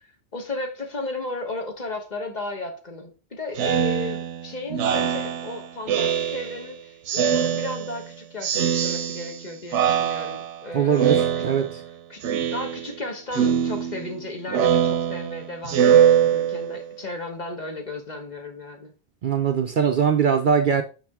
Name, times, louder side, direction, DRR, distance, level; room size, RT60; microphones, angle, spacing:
voice 1, 0.0-11.4 12.1-12.2 12.5-18.9, left 2 dB, 40° left, 1.2 m, -34 dB
Speech synthesizer, 3.6-6.7 7.1-8.1 8.4-9.4 9.7-10.6 11.0-11.9 12.2-13.0 13.3-16.9, right 9 dB, 90° right, 1.0 m, -23 dB
voice 2, 10.7-11.8 19.2-20.8, right 7 dB, 55° right, 0.6 m, -21 dB
5.8 x 5.7 x 3.5 m
omnidirectional pair, 1.2 m